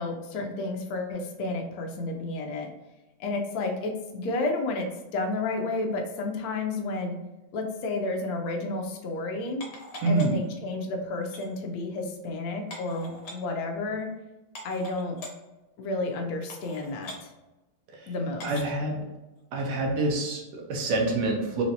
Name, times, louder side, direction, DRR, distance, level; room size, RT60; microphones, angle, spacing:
voice 1, 0.0-2.7 3.2-7.2 7.5-9.6 10.1-14.1 14.6-15.2 15.8-17.3 18.1-18.5, left 2 dB, 80° left, 2 dB, 0.8 m, -31 dB
sound 1, 9.6-10.5 11.2-11.5 12.7-13.3 14.1-14.2 14.5-15.3 16.0-16.1 16.5-17.2 18.4-18.8 19.4-19.5, left 1 dB, 60° left, 1.0 m, -42 dB
voice 2, 10.0-10.3 18.4-19.0 19.5-21.6, right 2 dB, 60° right, 1 dB, 1.1 m, -26 dB
4.3 x 3.1 x 2.7 m, 1.1 s
omnidirectional pair, 2.4 m